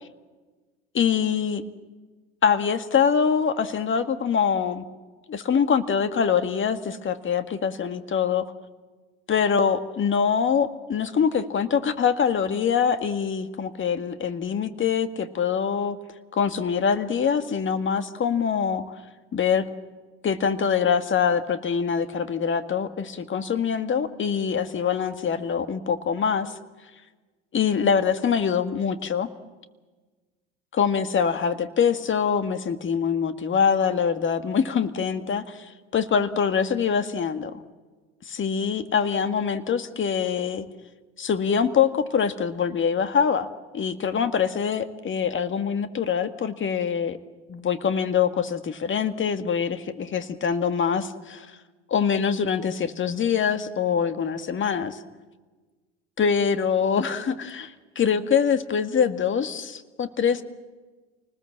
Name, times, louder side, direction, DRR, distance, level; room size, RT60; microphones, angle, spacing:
voice 1, 0.9-1.6 2.4-4.9 5.3-8.4 9.3-16.0 16.3-18.8 19.3-19.6 20.2-26.5 27.5-29.3 30.7-37.6 38.3-40.6 41.2-43.5 43.7-47.2 47.5-51.6 51.9-55.0 56.2-60.4, left 7 dB, 35° left, 9 dB, 1.9 m, -24 dB
29.0 x 20.0 x 7.5 m, 1.3 s
hypercardioid pair, 70°, 35 cm